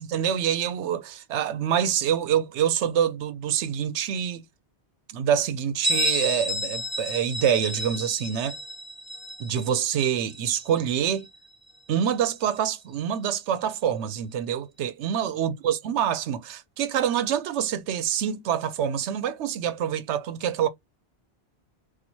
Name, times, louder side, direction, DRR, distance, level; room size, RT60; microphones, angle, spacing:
voice 1, 0.0-4.4 5.1-8.6 9.4-11.3 11.9-20.7, right 9 dB, 85° right, 0.9 m, -26 dB
Bell, 5.8-11.3, left 1 dB, ahead, 0.9 m, -31 dB
4.3 x 2.4 x 2.7 m
omnidirectional pair, 1.1 m